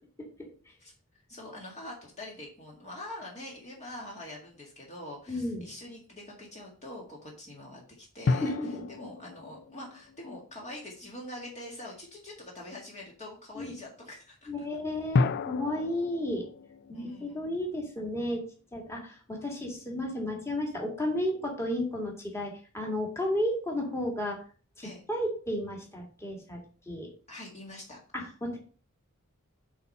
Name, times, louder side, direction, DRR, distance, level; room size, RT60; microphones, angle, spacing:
voice 1, 0.8-8.5 8.9-14.5 16.9-17.5 24.8-25.0 27.3-28.3, left 1 dB, 35° left, -2 dB, 1.8 m, -44 dB
sound 1, 3.9-4.6 8.3-11.1 15.1-18.4, left 4 dB, 50° left, 0.4 m, -33 dB
voice 2, 5.3-5.7 8.4-8.8 13.6-13.7 14.5-16.4 16.9-18.4 18.7-24.4 24.8-26.6 26.9-27.1 28.1-28.6, left 1 dB, 15° left, -1 dB, 2.1 m, -33 dB
8.0 x 4.3 x 5.5 m, 0.40 s
head